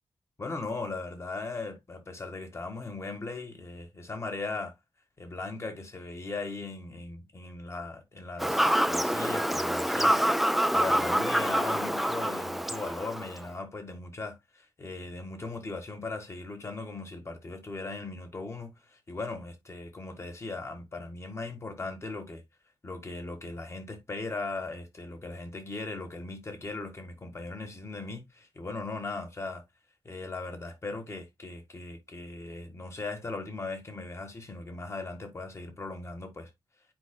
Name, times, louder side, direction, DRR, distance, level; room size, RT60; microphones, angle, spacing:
voice 1, 0.4-4.7 5.2-22.4 22.8-29.6 30.1-36.5, left 3 dB, 30° left, 1.7 m, -38 dB
Fowl / Bird vocalization bird call bird song, 8.4-13.4, equal, ahead, 0.4 m, -26 dB
9.6 x 4.8 x 2.2 m
wide cardioid pair, 140°, 9 cm